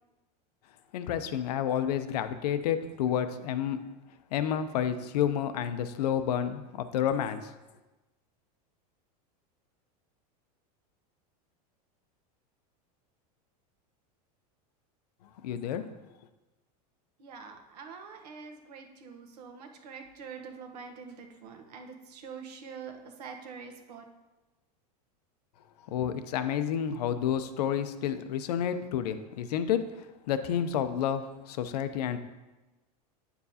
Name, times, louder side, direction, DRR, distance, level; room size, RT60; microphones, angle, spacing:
voice 1, 0.9-3.8 4.3-7.5 15.4-15.8 25.9-29.8 30.3-32.2, left 9 dB, 85° left, 10 dB, 0.6 m, -30 dB
voice 2, 17.2-24.1, right 5 dB, 85° right, 4 dB, 1.1 m, -45 dB
8.8 x 7.0 x 2.8 m, 1.1 s
supercardioid pair, 170°, 20 cm